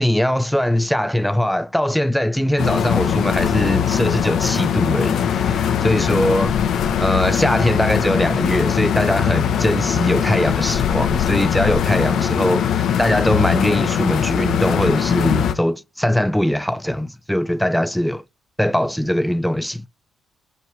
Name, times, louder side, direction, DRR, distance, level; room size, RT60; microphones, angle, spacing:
voice 1, 0.0-6.6 7.0-18.2 18.6-19.9, equal, ahead, 0.6 m, -21 dB
sound 1, 2.6-15.5, left 9 dB, 70° left, 0.9 m, -21 dB
8.3 x 3.2 x 4.5 m
cardioid pair, 90°, 0 cm